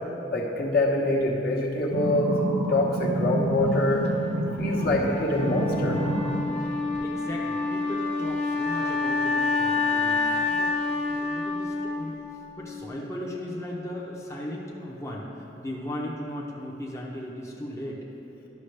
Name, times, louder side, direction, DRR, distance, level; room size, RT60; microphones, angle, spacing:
voice 1, 0.3-2.4 2.7-4.1 4.4-6.0, left 1 dB, 60° left, -2 dB, 1.1 m, -25 dB
sound 1, 1.9-5.1 5.4-6.4 6.9-7.0, right 1 dB, 80° right, 1.4 m, -28 dB
Wind instrument woodwind instrument, 4.7-12.7, left 3 dB, 35° left, 1.0 m, -28 dB
voice 2, 7.0-12.2 12.6-18.0, left 1 dB, 15° left, -3 dB, 0.7 m, -37 dB
11.5 x 6.0 x 3.3 m, 2.9 s
head